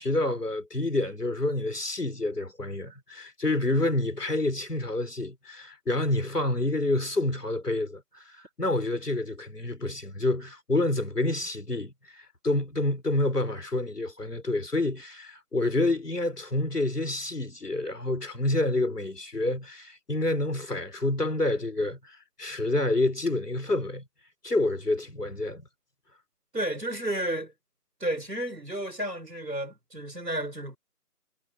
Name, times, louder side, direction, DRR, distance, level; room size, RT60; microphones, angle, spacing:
voice 1, 0.0-8.3 8.6-24.0 24.4-25.7, left 2 dB, 75° left, 3.7 m, -28 dB
voice 2, 26.5-27.5 28.0-30.8, right 1 dB, 85° right, 4.3 m, -32 dB
figure-of-eight pair, 170°, 48 cm